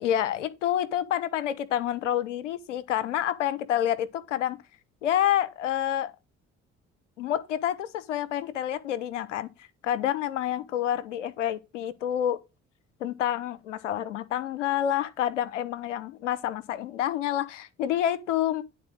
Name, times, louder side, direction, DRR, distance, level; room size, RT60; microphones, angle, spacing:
voice 1, 0.0-4.6 5.0-6.1 7.2-9.5 9.8-12.4 13.0-18.6, left 11 dB, 85° left, 0.7 m, -28 dB
10.5 x 4.0 x 6.1 m
hypercardioid pair, 45°, 36 cm